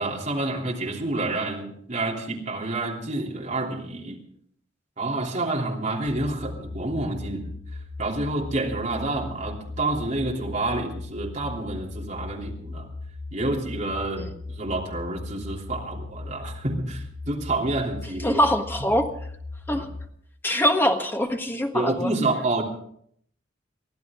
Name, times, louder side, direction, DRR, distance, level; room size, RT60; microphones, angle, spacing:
voice 1, 0.0-4.2 5.0-7.5 8.0-12.9 13.3-18.4 19.7-19.9 21.7-22.6, right 2 dB, 40° right, -2 dB, 3.2 m, -28 dB
sound 1, 6.1-20.1, left 3 dB, 40° left, 2.2 m, -38 dB
voice 2, 18.2-19.1 19.7-19.9 20.4-22.1, equal, 10° left, 3 dB, 1.5 m, -23 dB
23.0 x 14.5 x 3.7 m, 0.66 s
head